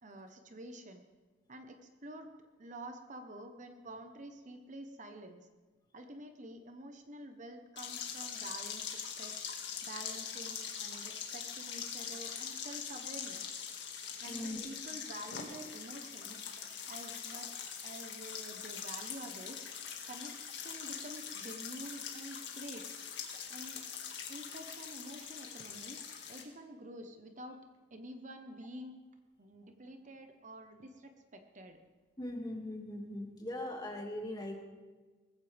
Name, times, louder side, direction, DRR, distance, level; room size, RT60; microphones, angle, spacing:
voice 1, 0.0-1.0 1.5-2.3 2.6-5.5 5.9-9.4 9.8-13.6 14.2-16.4 16.9-19.6 20.1-22.9 23.5-23.8 24.3-26.0 26.3-27.6 27.9-28.9 29.4-31.8, right 1 dB, 45° right, 6 dB, 1.1 m, -48 dB
sound 1, 7.8-26.4, left 7 dB, 75° left, 2.1 m, -43 dB
voice 2, 14.3-14.6 23.4-23.5 32.2-34.6, left 1 dB, 25° left, 0 dB, 2.3 m, -40 dB
19.5 x 15.0 x 3.5 m, 1.3 s
head